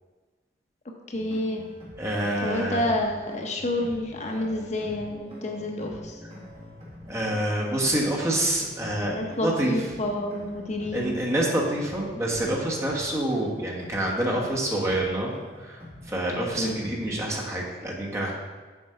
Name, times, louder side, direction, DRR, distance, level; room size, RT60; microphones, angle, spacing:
voice 1, 1.1-1.6 2.4-6.2 9.1-11.2 16.6-16.8, left 1 dB, 40° left, 2 dB, 0.7 m, -29 dB
sound 1, 1.2-17.6, left 1 dB, 35° right, 1.7 m, -45 dB
voice 2, 2.0-2.8 7.1-9.8 10.9-15.3 15.6-15.8 16.1-18.3, right 1 dB, 15° right, -3 dB, 1.3 m, -27 dB
7.3 x 4.5 x 5.7 m, 1.4 s
head